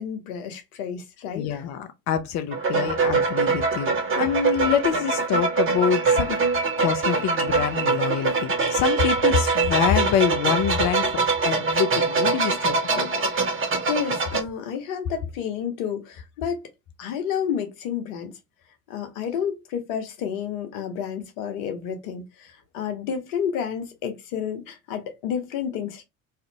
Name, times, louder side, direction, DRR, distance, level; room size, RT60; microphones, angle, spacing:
voice 1, 0.0-1.6 13.8-16.7 17.0-18.3 18.9-26.0, left 8 dB, 70° left, 0.8 m, -30 dB
voice 2, 1.3-6.4 6.8-13.2, left 8 dB, 45° left, 0.5 m, -26 dB
sound 1, 2.5-14.4, right 4 dB, 30° right, 0.8 m, -23 dB
2.5 x 2.4 x 2.8 m
hypercardioid pair, 60°, 41 cm